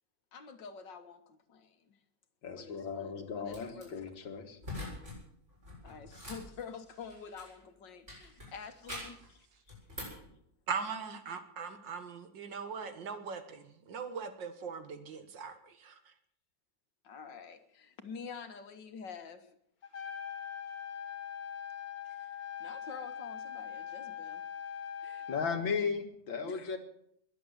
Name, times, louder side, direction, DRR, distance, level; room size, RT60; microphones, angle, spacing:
voice 1, 0.3-2.0 2.6-4.1 5.8-9.5 10.0-10.2 17.0-19.6 22.1-22.3 22.6-24.4 25.0-25.3 26.4-26.8, left 6 dB, 70° left, 9 dB, 2.1 m, -48 dB
voice 2, 2.4-4.6 25.3-26.8, left 5 dB, 85° left, 6 dB, 2.5 m, -36 dB
sound 1, 3.5-3.8 4.6-5.2 5.5-7.6 8.1-9.3 9.7-10.3, left 1 dB, 35° right, 7.7 m, -44 dB
voice 3, 10.7-16.1, right 6 dB, 70° right, 9 dB, 2.2 m, -40 dB
Trumpet, 19.8-25.6, left 8 dB, 50° left, 2.2 m, -42 dB
21.5 x 7.9 x 8.1 m, 0.71 s
omnidirectional pair, 2.0 m